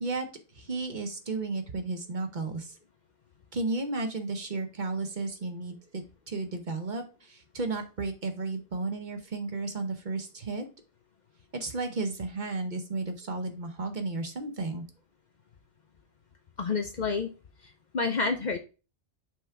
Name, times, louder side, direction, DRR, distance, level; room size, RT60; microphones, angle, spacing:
voice 1, 0.5-2.8 3.5-10.6 11.5-14.8, right 3 dB, 45° right, 6 dB, 1.0 m, -33 dB
voice 2, 16.6-17.3 17.9-18.6, left 4 dB, 50° left, 6 dB, 0.6 m, -28 dB
5.9 x 3.5 x 4.5 m, 0.32 s
omnidirectional pair, 1.1 m